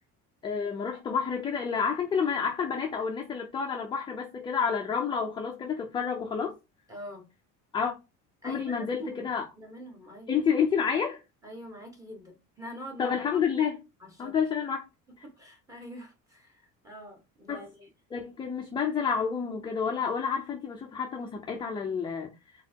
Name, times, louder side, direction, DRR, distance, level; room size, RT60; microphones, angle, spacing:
voice 1, 0.4-6.5 7.7-7.9 8.4-9.4 10.3-11.2 13.0-13.8 14.2-14.8 17.5-17.6 18.1-22.3, left 6 dB, 15° left, 0.4 m, -29 dB
voice 2, 6.9-7.3 8.4-9.3 9.6-10.3 11.4-13.2 14.0-14.3 15.2-17.9, equal, 10° right, 1.2 m, -44 dB
4.2 x 3.5 x 2.8 m
cardioid pair, 180°, 31 cm